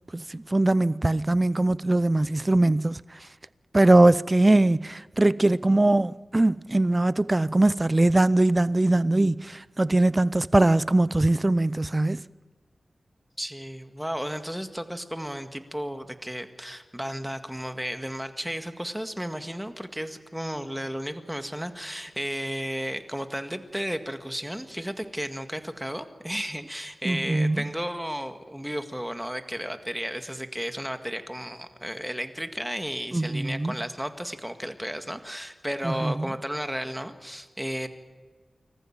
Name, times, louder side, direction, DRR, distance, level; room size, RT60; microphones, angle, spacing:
voice 1, 0.1-3.0 3.7-12.2 27.0-27.6 33.1-33.8 35.8-36.1, right 2 dB, 30° right, 0.6 m, -21 dB
voice 2, 13.4-37.9, equal, 5° right, 1.9 m, -33 dB
25.5 x 14.5 x 8.8 m
cardioid pair, 55°, 0 cm